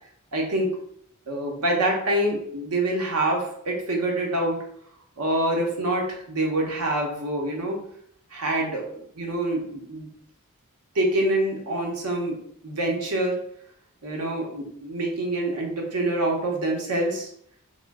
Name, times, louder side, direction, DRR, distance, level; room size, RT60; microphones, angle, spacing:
voice 1, 0.3-0.7 1.3-4.6 5.2-7.8 8.3-10.1 10.9-12.4 12.6-13.4 14.0-17.3, right 1 dB, 90° right, 0 dB, 0.8 m, -26 dB
3.0 x 2.1 x 3.4 m, 0.69 s
head